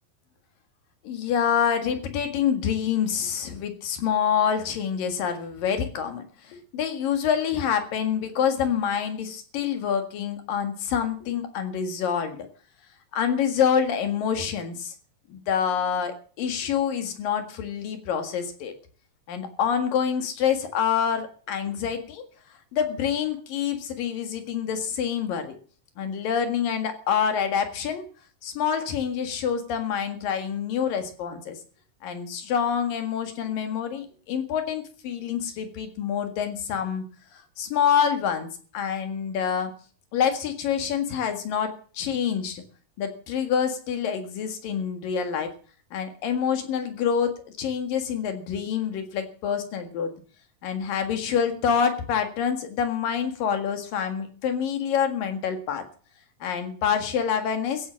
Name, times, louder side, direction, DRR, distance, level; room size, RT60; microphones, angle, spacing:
voice 1, 1.1-12.5 13.1-14.9 15.3-18.7 19.3-22.2 22.7-25.6 26.0-28.0 28.4-31.6 32.0-37.0 37.6-39.7 40.1-42.6 43.0-45.5 45.9-50.1 50.6-55.8 56.4-57.8, left 7 dB, 75° left, 7 dB, 3.5 m, -26 dB
15.5 x 8.4 x 7.5 m, 0.43 s
omnidirectional pair, 4.1 m